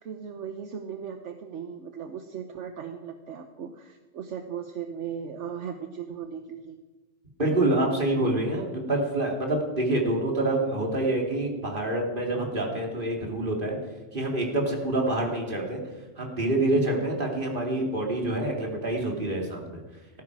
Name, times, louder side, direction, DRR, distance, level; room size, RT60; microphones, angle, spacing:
voice 1, 0.0-6.8, right 7 dB, 70° right, 7 dB, 1.2 m, -37 dB
voice 2, 7.4-13.8 14.1-15.8 16.2-19.8, right 1 dB, 45° right, 0 dB, 2.9 m, -26 dB
18.0 x 14.5 x 4.8 m, 1.2 s
omnidirectional pair, 1.3 m